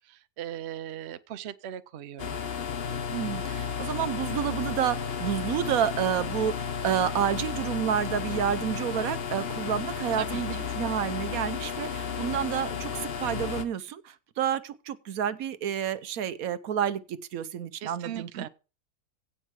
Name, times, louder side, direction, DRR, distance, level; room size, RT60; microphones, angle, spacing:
voice 1, 0.1-2.4 10.2-10.7 17.7-18.5, right 11 dB, 55° right, 0.8 m, -39 dB
sound 1, 2.2-13.6, left 6 dB, 50° left, 1.0 m, -33 dB
voice 2, 3.1-18.5, right 9 dB, 80° right, 1.2 m, -30 dB
16.5 x 5.5 x 4.7 m
omnidirectional pair, 1.5 m